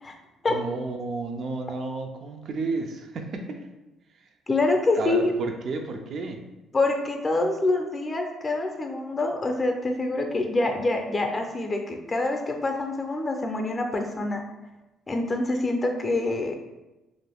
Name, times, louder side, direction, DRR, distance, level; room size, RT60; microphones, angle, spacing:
voice 1, 0.5-3.6 5.0-6.4, right 3 dB, 60° right, 4 dB, 0.4 m, -32 dB
voice 2, 4.5-5.3 6.7-14.4 15.1-16.6, left 2 dB, 30° left, 3 dB, 0.5 m, -26 dB
2.5 x 2.3 x 3.4 m, 1.0 s
cardioid pair, 85°, 0 cm